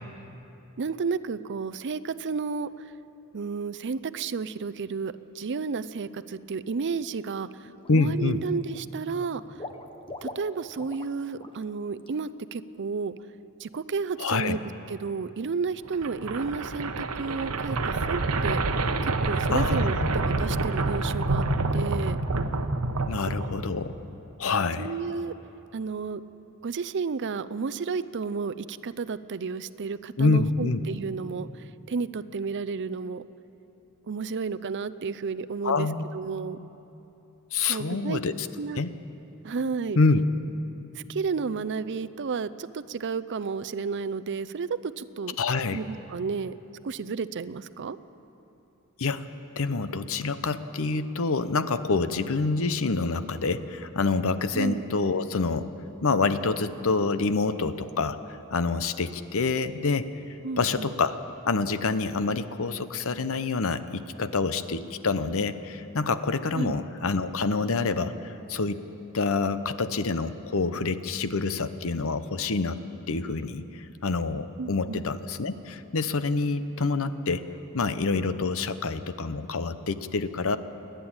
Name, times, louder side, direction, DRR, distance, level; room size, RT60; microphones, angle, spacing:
voice 1, 0.8-2.7 3.3-9.6 10.2-13.1 13.6-14.6 14.9-18.6 19.0-21.4 21.7-22.2 24.8-25.3 25.7-26.2 26.6-33.2 34.1-36.6 37.6-38.2 38.6-38.8 39.4-40.0 40.9-45.4 45.7-46.5 46.8-48.0 54.5-54.8 60.4-60.9 66.6-66.8 74.6-75.0, right 5 dB, 55° right, 14 dB, 0.5 m, -32 dB
Water / Liquid, 7.0-7.3 7.6-8.3 8.6-11.1 11.4-11.6 12.0-12.1, left 2 dB, 25° left, 1.1 m, -43 dB
voice 2, 7.9-8.4 14.2-14.6 19.5-20.1 23.1-24.0 24.4-24.9 30.2-30.8 35.6-36.0 36.6-36.7 37.5-38.5 38.8-38.9 40.0-40.2 45.4-45.8 49.0-49.2 49.6-55.7 56.0-58.2 58.5-60.1 60.6-61.2 61.4-68.8 69.1-72.8 73.1-77.4 77.7-80.6, left 3 dB, 65° left, 12 dB, 0.8 m, -27 dB
sound 1, 15.9-23.9, right 2 dB, 75° right, 1.0 m, -27 dB
29.5 x 10.5 x 8.8 m, 2.9 s
head